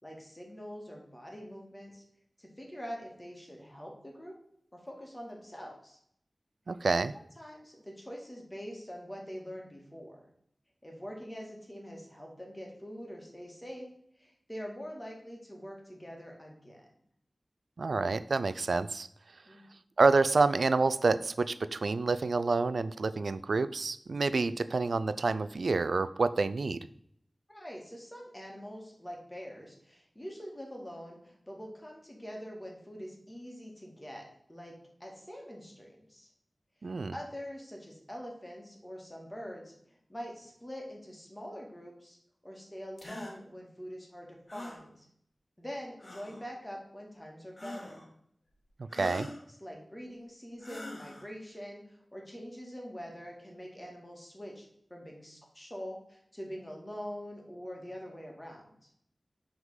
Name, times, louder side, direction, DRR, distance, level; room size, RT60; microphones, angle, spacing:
voice 1, 0.0-2.0 2.4-4.3 4.7-6.0 7.1-10.2 10.8-13.9 14.2-16.8 19.5-19.6 27.5-34.7 35.0-36.3 36.8-39.7 40.1-42.2 42.4-45.0 45.6-48.0 49.1-54.7 54.9-58.6, equal, 20° left, -1 dB, 2.1 m, -44 dB
voice 2, 6.7-7.1 17.8-19.1 20.0-26.8 36.8-37.1 48.9-49.3, right 3 dB, 85° right, 14 dB, 0.3 m, -28 dB
sound 1, 43.0-43.4 44.5-44.8 46.0-46.5 47.6-48.1 48.9-49.4 50.6-51.3, left 1 dB, 50° left, 1.4 m, -43 dB
5.9 x 3.7 x 5.6 m, 0.69 s
wide cardioid pair, 60°, 0 cm